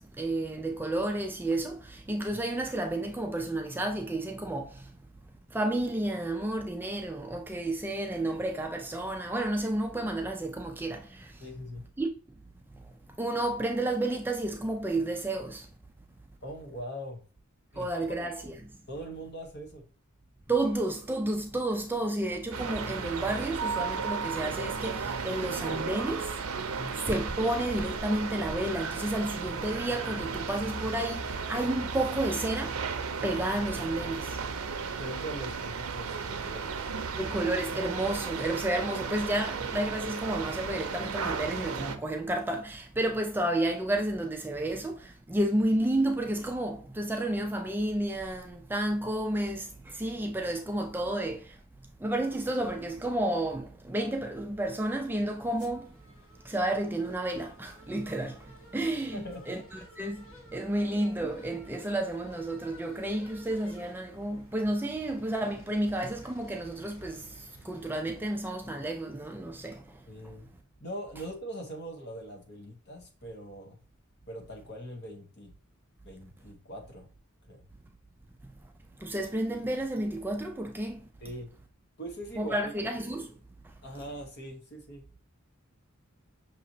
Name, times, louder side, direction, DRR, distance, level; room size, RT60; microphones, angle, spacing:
voice 1, 0.0-4.9 5.5-11.3 12.0-12.1 13.2-15.7 17.8-18.5 20.5-26.3 26.9-32.8 33.2-34.4 37.2-51.6 52.0-55.9 56.4-58.4 58.7-60.2 60.5-69.8 79.0-81.0 82.4-83.3, right 1 dB, 10° right, 0.4 m, -31 dB
voice 2, 11.4-11.9 16.4-17.2 17.7-18.2 18.9-19.9 26.7-27.0 35.0-36.9 59.1-59.9 70.1-70.5 70.8-73.8 74.3-75.6 76.0-77.1 77.5-77.6 81.2-81.5 82.0-82.7 83.8-85.1, equal, 50° left, 1.2 m, -42 dB
sound 1, 22.5-42.0, right 5 dB, 85° right, 0.6 m, -34 dB
sound 2, 54.6-69.1, equal, 85° left, 1.6 m, -55 dB
6.0 x 3.0 x 2.7 m
head